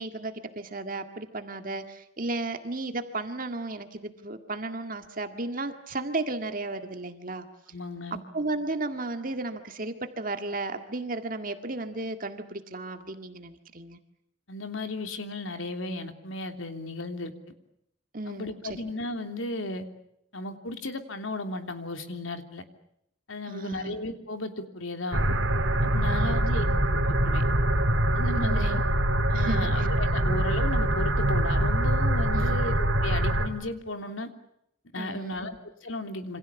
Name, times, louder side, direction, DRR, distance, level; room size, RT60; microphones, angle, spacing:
voice 1, 0.0-7.5 8.3-14.0 18.1-18.8 23.5-24.0 26.1-26.4 28.4-28.9 29.3-29.9 32.3-32.6 35.0-35.4, right 2 dB, 45° right, 7 dB, 1.9 m, -34 dB
voice 2, 7.7-8.2 14.5-17.3 18.2-19.8 20.3-22.6 23.3-25.3 25.8-26.6 26.9-27.4 28.1-28.8 29.3-34.3 34.9-36.4, left 2 dB, 85° left, 7 dB, 3.1 m, -35 dB
sound 1, 25.1-33.5, right 1 dB, 90° right, 3.0 m, -24 dB
27.5 x 26.0 x 7.1 m, 0.77 s
head